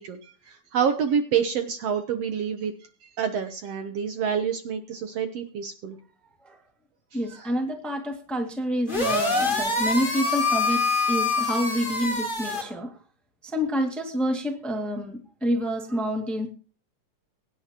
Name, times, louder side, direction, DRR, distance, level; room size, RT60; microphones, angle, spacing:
voice 1, 0.0-2.7 3.2-6.0 7.3-7.5, right 7 dB, 65° right, 7 dB, 1.7 m, -27 dB
voice 2, 7.1-12.9 13.4-16.5, equal, ahead, 3 dB, 1.3 m, -28 dB
sound 1, 8.9-12.6, left 3 dB, 20° left, 1.7 m, -25 dB
22.5 x 10.0 x 2.9 m, 0.39 s
omnidirectional pair, 3.5 m